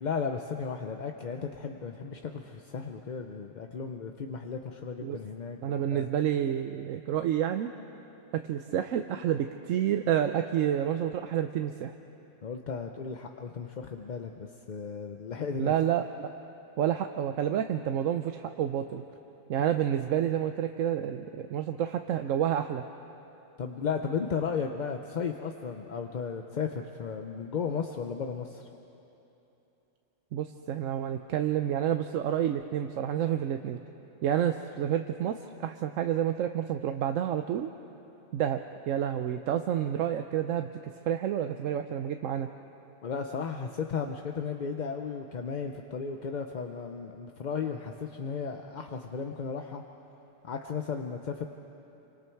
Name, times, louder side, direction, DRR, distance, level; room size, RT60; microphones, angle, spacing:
voice 1, 0.0-5.6 5.9-6.1 12.4-15.7 23.6-28.7 43.0-49.8 50.4-51.4, left 6 dB, 45° left, 5 dB, 0.7 m, -35 dB
voice 2, 5.6-7.7 8.3-11.9 15.6-16.3 16.8-19.0 19.5-22.8 30.3-33.8 34.2-37.7 38.3-40.7 41.1-42.5, right 10 dB, 80° right, 7 dB, 1.0 m, -29 dB
27.0 x 25.0 x 4.6 m, 3.0 s
omnidirectional pair, 1.3 m